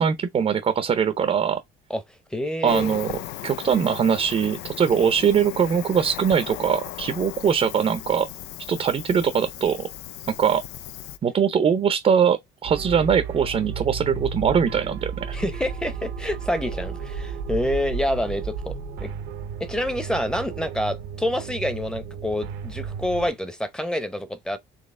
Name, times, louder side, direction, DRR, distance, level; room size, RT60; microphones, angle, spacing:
voice 1, 0.0-1.6 2.6-3.1 3.4-8.3 8.7-9.9 10.4-10.6 11.2-15.4, right 7 dB, 35° right, 0.6 m, -22 dB
voice 2, 2.3-3.0 15.3-19.1 19.6-24.6, left 1 dB, 5° left, 0.8 m, -27 dB
Cricket, 2.7-11.2, left 14 dB, 85° left, 0.5 m, -37 dB
sound 1, 12.6-23.3, right 6 dB, 90° right, 0.9 m, -33 dB
4.1 x 3.1 x 3.6 m
cardioid pair, 110°, 17 cm